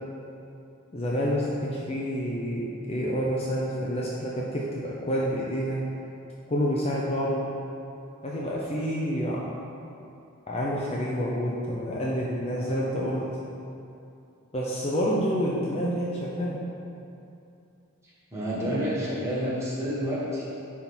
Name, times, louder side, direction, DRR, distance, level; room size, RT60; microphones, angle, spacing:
voice 1, 0.9-5.8 6.5-7.4 8.2-9.4 10.5-13.2 14.5-16.6, equal, 30° left, -5 dB, 0.6 m, -28 dB
voice 2, 18.3-20.5, equal, 10° right, -8 dB, 1.4 m, -29 dB
9.8 x 3.6 x 4.4 m, 2.6 s
head